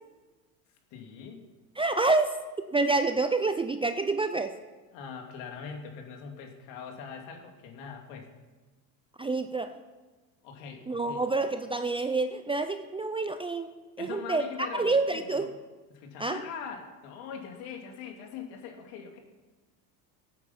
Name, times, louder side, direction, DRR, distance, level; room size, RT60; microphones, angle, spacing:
voice 1, 0.9-1.4 4.9-8.3 10.4-11.2 14.0-15.5 15.9-19.2, left 6 dB, 65° left, 3 dB, 2.8 m, -42 dB
voice 2, 1.8-2.3 2.7-4.5 9.2-9.7 10.9-13.7 14.0-14.4 14.7-15.5 16.2-16.4, right 3 dB, 10° right, 8 dB, 0.5 m, -27 dB
16.5 x 9.0 x 5.9 m, 1.2 s
supercardioid pair, 110°, 47 cm